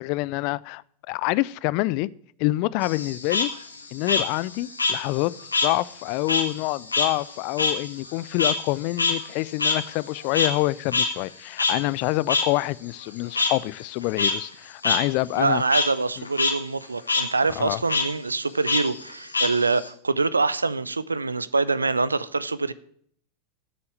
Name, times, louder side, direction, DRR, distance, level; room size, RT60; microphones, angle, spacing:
voice 1, 0.0-2.1 2.4-3.5 3.9-5.3 5.6-15.6 16.2-16.3 17.6-17.8, left 20 dB, 50° left, 0.4 m, -26 dB
Frog, 2.8-5.7 6.0-10.7 10.9-11.1 11.6-11.7 12.3-12.4 13.3-13.5 14.0-14.3 14.8-15.0 15.3-15.8 16.2-16.5 16.8-17.2 17.9-18.0 18.7-19.9, left 4 dB, 85° left, 1.7 m, -24 dB
voice 2, 15.4-22.7, right 3 dB, 85° right, 0.5 m, -25 dB
8.3 x 6.9 x 8.3 m
figure-of-eight pair, 90°, 0 cm